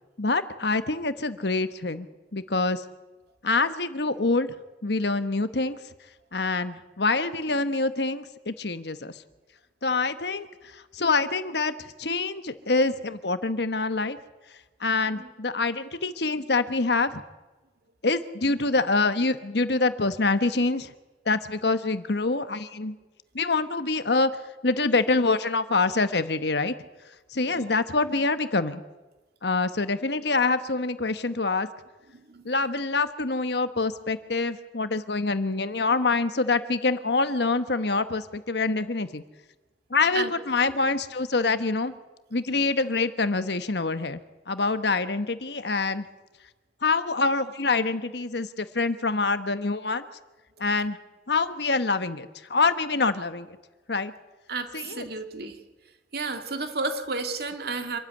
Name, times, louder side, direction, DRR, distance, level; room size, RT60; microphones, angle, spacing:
voice 1, 0.2-2.8 3.4-4.5 4.8-5.8 6.3-9.1 9.8-14.2 14.8-17.2 18.0-20.9 21.2-22.9 23.3-24.3 24.6-26.7 27.3-28.8 29.4-31.7 32.4-39.2 39.9-41.9 42.3-44.2 44.5-46.1 46.8-50.0 50.6-51.0 51.3-53.6 53.9-54.1 54.7-55.0, left 3 dB, 65° left, 11 dB, 1.3 m, -25 dB
voice 2, 27.5-27.8 32.1-32.5 40.1-40.3 40.8-40.9 54.5-55.6 56.1-58.0, right 3 dB, 60° right, 6 dB, 2.4 m, -32 dB
26.5 x 13.5 x 9.8 m, 1.1 s
head